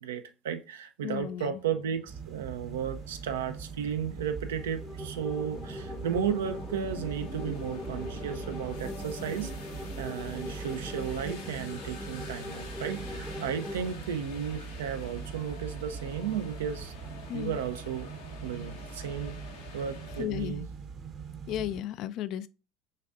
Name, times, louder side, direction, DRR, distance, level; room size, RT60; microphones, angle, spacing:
voice 1, 0.0-9.5 10.0-16.9 17.3-18.1 18.4-19.4 19.7-20.6, right 8 dB, 80° right, 0.5 m, -34 dB
voice 2, 1.0-1.6 17.3-17.6 20.2-20.7 21.5-22.5, left 12 dB, 55° left, 0.3 m, -34 dB
sound 1, 1.1-20.2, left 3 dB, 85° left, 1.0 m, -47 dB
sound 2, 2.1-21.8, right 6 dB, 45° right, 0.8 m, -42 dB
sound 3, 4.4-13.9, left 2 dB, 5° left, 0.7 m, -42 dB
6.4 x 2.4 x 2.4 m
hypercardioid pair, 75°, 0 cm